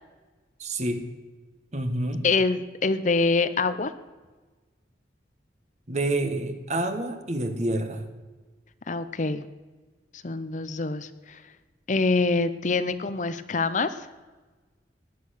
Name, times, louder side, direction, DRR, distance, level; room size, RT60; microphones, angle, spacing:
voice 1, 0.6-1.0 1.7-2.3 5.9-8.0, right 1 dB, 40° right, 7 dB, 1.5 m, -28 dB
voice 2, 2.2-3.9 8.9-9.4 10.2-11.4 11.9-13.9, left 3 dB, 45° left, 12 dB, 0.7 m, -25 dB
17.0 x 10.5 x 6.6 m, 1.3 s
head